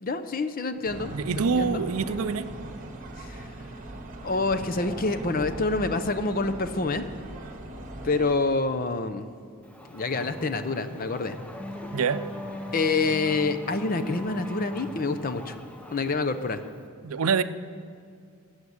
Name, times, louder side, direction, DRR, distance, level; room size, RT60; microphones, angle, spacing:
voice 1, 0.0-1.8 3.2-3.5 4.2-7.1 8.0-9.3 9.9-11.4 12.7-15.6 15.9-16.6, left 3 dB, 40° left, 10 dB, 0.6 m, -27 dB
sound 1, 0.9-8.3, right 1 dB, 35° right, 1.2 m, -39 dB
voice 2, 1.1-2.5 11.9-12.2 17.0-17.4, right 5 dB, 75° right, 12 dB, 0.5 m, -25 dB
Race car auto racing / Accelerating revving vroom, 9.6-16.9, left 1 dB, 5° left, 0.7 m, -40 dB
14.5 x 8.0 x 7.3 m, 2.3 s
head